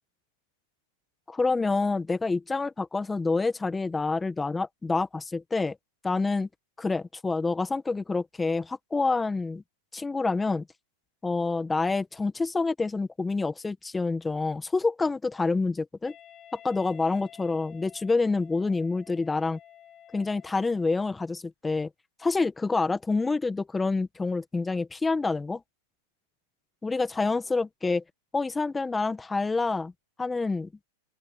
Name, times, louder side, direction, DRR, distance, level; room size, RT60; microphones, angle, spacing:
voice 1, 1.3-5.8 6.0-6.5 6.8-9.6 9.9-10.7 11.2-16.1 16.5-19.6 20.1-21.9 22.2-25.6 26.8-28.0 28.3-29.9 30.2-30.7, left 3 dB, 10° left, 1.3 m, -27 dB
Wind instrument woodwind instrument, 16.0-21.0, left 10 dB, 30° left, 7.9 m, -52 dB
open air
hypercardioid pair, 110°, 0 cm